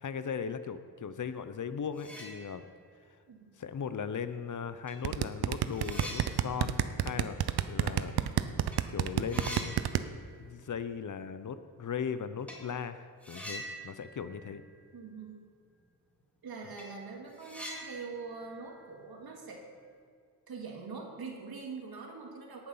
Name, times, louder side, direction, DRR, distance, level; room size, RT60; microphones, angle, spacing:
voice 1, 0.0-2.6 3.6-8.2 8.9-9.7 10.4-14.6, left 7 dB, 55° left, 11 dB, 0.7 m, -38 dB
sound 1, 1.9-3.0 3.3-3.4 4.4-4.5 4.9-8.3 8.6-8.8 9.1-10.6 10.9-11.0 12.5-12.7 13.2-15.4 15.6-15.7 16.2-16.3 16.6-19.8, equal, 5° left, 2.8 m, -46 dB
sound 2, 5.0-10.0, right 11 dB, 90° right, 0.6 m, -28 dB
voice 2, 14.9-15.3 16.4-19.6 20.5-22.7, right 4 dB, 70° right, 0 dB, 2.4 m, -43 dB
18.0 x 6.9 x 5.6 m, 2.2 s
cardioid pair, 85°, 37 cm